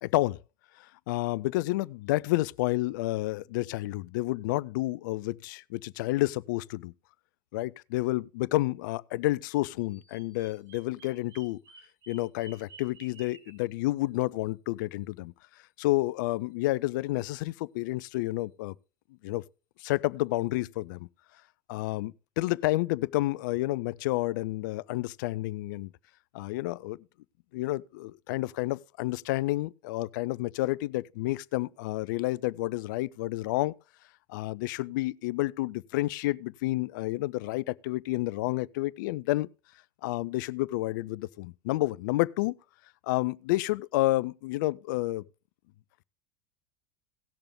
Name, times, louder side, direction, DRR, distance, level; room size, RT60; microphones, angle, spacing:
voice 1, 0.0-0.4 0.8-6.9 7.5-11.6 12.1-15.3 15.8-18.8 19.2-19.4 19.8-21.1 21.7-25.9 26.3-27.0 27.5-33.7 34.3-39.5 40.0-42.6 43.0-45.2, left 18 dB, 65° left, 0.4 m, -30 dB
Bird vocalization bird call bird song, 9.8-13.6, right 4 dB, 35° right, 2.8 m, -53 dB
17.5 x 6.8 x 3.6 m
hypercardioid pair, 80°, 11 cm